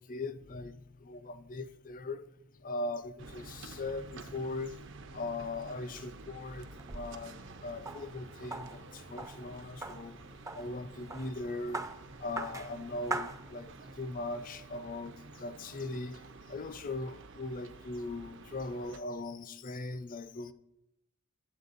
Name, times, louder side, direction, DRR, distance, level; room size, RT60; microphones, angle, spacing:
voice 1, 0.0-2.2 2.6-4.8 5.1-10.2 10.5-11.8 12.2-16.2 16.5-20.5, left 2 dB, 40° left, 0.5 m, -40 dB
sound 1, 3.2-19.0, right 3 dB, 65° right, 0.6 m, -50 dB
sound 2, 6.5-14.0, right 2 dB, 15° right, 0.4 m, -43 dB
9.7 x 7.4 x 4.0 m
head